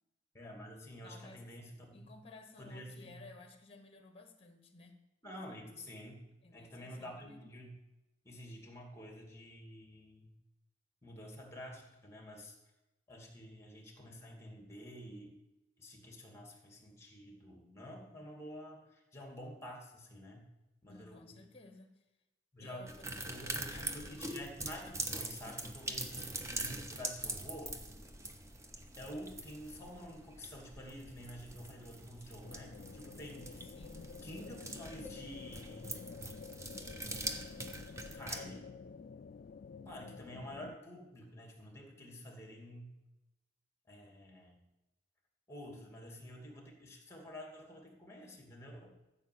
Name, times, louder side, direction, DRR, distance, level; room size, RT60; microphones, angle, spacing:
voice 1, 0.3-2.0 2.6-3.3 5.2-6.3 6.5-7.7 8.2-10.3 11.0-12.5 13.1-15.4 15.8-20.4 20.8-21.4 22.5-22.9 23.3-27.8 29.0-33.6 34.2-36.1 36.7-38.7 39.9-42.9 43.9-44.6 45.5-48.9, equal, 15° left, 1 dB, 2.5 m, -49 dB
voice 2, 1.0-1.4 1.9-5.0 6.4-7.5 20.9-21.9 22.6-24.5 33.7-34.2, left 3 dB, 30° left, 6 dB, 1.2 m, -56 dB
sound 1, 22.9-38.4, right 2 dB, 15° right, 0.9 m, -43 dB
sound 2, 32.4-40.8, left 5 dB, 50° left, 0.3 m, -50 dB
13.5 x 5.5 x 7.8 m, 0.99 s
head